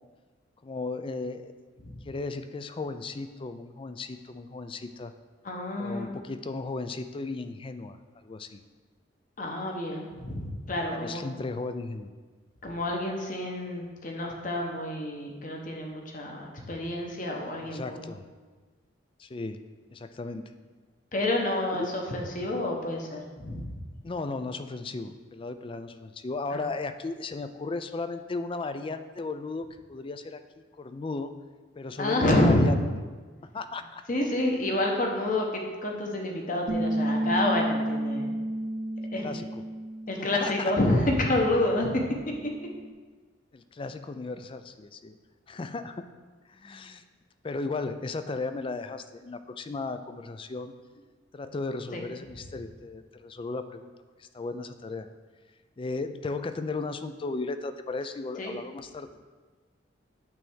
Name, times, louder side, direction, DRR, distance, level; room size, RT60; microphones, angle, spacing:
voice 1, 0.6-1.5 2.0-5.1 5.8-8.6 10.9-12.1 17.6-18.3 19.2-19.6 19.9-20.5 21.7-21.9 24.0-30.4 30.8-31.3 31.8-32.8 33.4-34.0 39.2-39.5 40.2-40.7 43.5-45.2 45.5-46.0 46.5-47.0 47.4-50.7 51.3-53.9 54.2-55.1 55.8-59.1, left 3 dB, 30° left, 10 dB, 0.4 m, -35 dB
voice 2, 5.4-6.1 9.4-11.2 12.6-18.1 21.1-23.7 26.5-26.7 32.0-32.7 34.1-38.3 39.1-39.4 40.1-42.0 51.9-52.1 58.4-58.6, left 1 dB, 45° left, 0 dB, 1.1 m, -28 dB
Bass guitar, 36.7-42.9, right 1 dB, 35° right, 0.7 m, -32 dB
9.0 x 3.4 x 6.3 m, 1.4 s
head